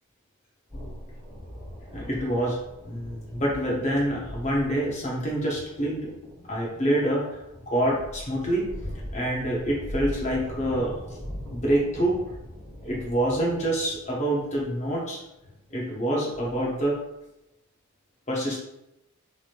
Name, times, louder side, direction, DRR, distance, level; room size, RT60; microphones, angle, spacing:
sound 1, 0.7-16.9, equal, 10° right, 1.5 m, -41 dB
voice 1, 1.9-2.6 2.8-6.1 6.5-7.3 7.7-8.7 9.1-10.9 11.5-12.2 12.8-15.2 15.7-17.0 18.3-18.6, right 1 dB, 30° left, -3 dB, 0.6 m, -26 dB
3.0 x 3.0 x 2.4 m, 0.87 s
head